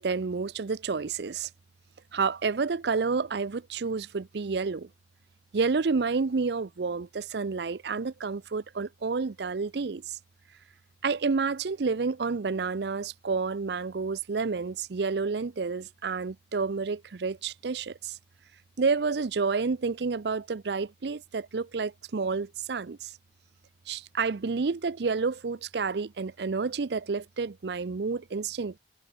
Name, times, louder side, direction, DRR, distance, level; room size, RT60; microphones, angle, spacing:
voice 1, 0.0-1.5 2.1-4.9 5.5-10.2 11.0-18.2 18.8-23.1 23.9-28.8, right 4 dB, 70° right, 0.5 m, -29 dB
head